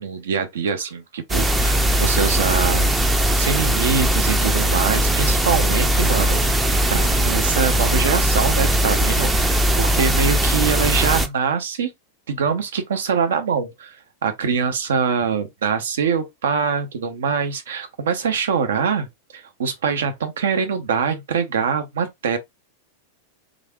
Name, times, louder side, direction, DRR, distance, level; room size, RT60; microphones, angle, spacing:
voice 1, 0.0-2.9 3.4-11.9 12.3-14.0 14.2-19.1 19.3-22.4, right 6 dB, 60° right, 0.6 m, -24 dB
sound 1, 1.3-11.3, right 1 dB, 10° right, 0.4 m, -19 dB
3.2 x 2.4 x 2.3 m
figure-of-eight pair, 90°, 0 cm